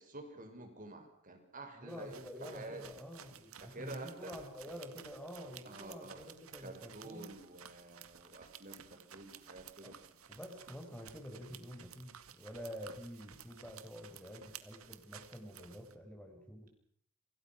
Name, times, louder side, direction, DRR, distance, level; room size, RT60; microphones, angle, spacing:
voice 1, 0.0-3.0 3.6-4.4 5.6-6.2 6.6-10.1, right 2 dB, 40° right, 5 dB, 6.1 m, -49 dB
voice 2, 1.8-7.3 9.8-9.9 10.3-16.7, equal, 5° left, 3 dB, 5.2 m, -48 dB
sound 1, 1.9-15.9, right 8 dB, 80° right, 2.0 m, -55 dB
29.0 x 26.0 x 6.2 m, 0.64 s
head